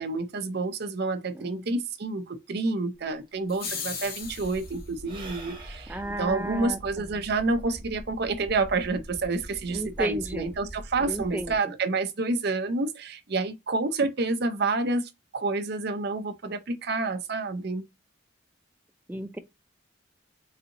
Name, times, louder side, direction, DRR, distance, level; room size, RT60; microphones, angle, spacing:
voice 1, 0.0-17.8, right 3 dB, 50° right, 0.6 m, -29 dB
voice 2, 1.3-1.8 5.9-7.1 9.7-10.5 11.0-11.7 19.1-19.4, right 1 dB, 10° right, 0.3 m, -34 dB
Sigh / Breathing, 3.0-3.1 3.3-8.0, right 2 dB, 25° right, 0.9 m, -48 dB
sound 1, 3.5-4.8, left 6 dB, 45° left, 0.9 m, -36 dB
sound 2, 4.2-11.6, equal, 80° left, 2.0 m, -44 dB
4.1 x 2.7 x 2.6 m
head